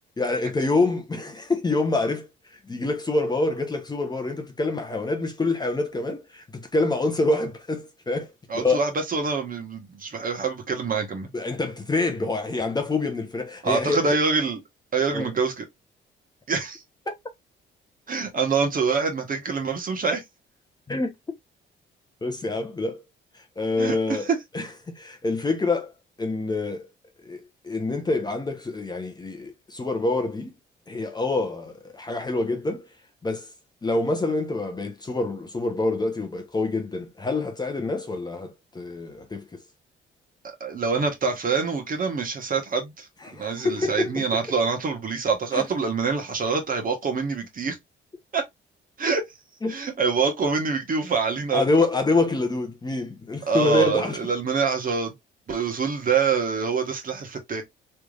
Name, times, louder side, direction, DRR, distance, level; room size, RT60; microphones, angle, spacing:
voice 1, 0.2-2.3 2.7-8.3 8.5-8.8 11.3-14.1 15.1-15.3 17.1-17.2 20.9-21.1 22.2-23.0 23.3-24.3 24.5-25.9 26.2-26.9 27.2-30.5 30.9-32.9 33.2-33.5 33.8-39.4 43.2-44.2 45.5-45.7 49.6-49.8 51.5-54.2, left 2 dB, 20° left, 0.8 m, -26 dB
voice 2, 8.5-11.3 13.6-14.6 14.9-15.6 16.5-16.8 18.1-20.2 23.8-24.4 40.6-43.1 43.3-47.8 48.3-48.4 49.0-49.2 49.7-51.6 53.5-55.1 55.5-57.6, right 5 dB, 45° right, 1.4 m, -25 dB
3.4 x 3.3 x 2.4 m
cardioid pair, 90°, 20 cm